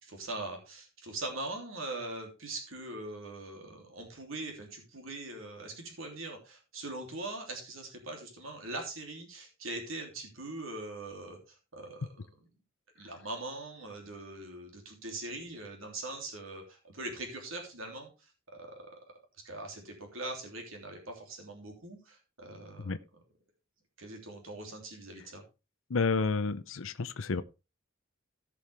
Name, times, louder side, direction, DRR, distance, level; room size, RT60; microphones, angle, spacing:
voice 1, 0.0-12.3 12.9-18.9 19.4-22.9 24.0-25.4, right 2 dB, 75° right, 3.2 m, -42 dB
voice 2, 25.9-27.4, left 4 dB, 70° left, 0.7 m, -30 dB
16.0 x 6.3 x 3.5 m
head